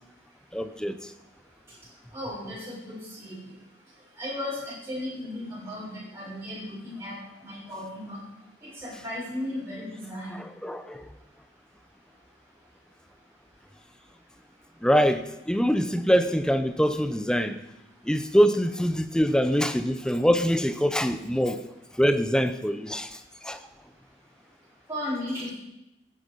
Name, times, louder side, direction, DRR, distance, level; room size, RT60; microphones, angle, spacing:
voice 1, 0.5-1.1 10.3-11.1 14.8-17.6 18.0-21.6 21.9-23.6, equal, 5° left, 10 dB, 0.7 m, -24 dB
voice 2, 2.1-3.4 4.2-7.1 7.4-8.2 8.8-10.4 24.9-25.5, left 1 dB, 15° right, -9 dB, 6.8 m, -35 dB
16.0 x 9.9 x 5.3 m, 0.89 s
head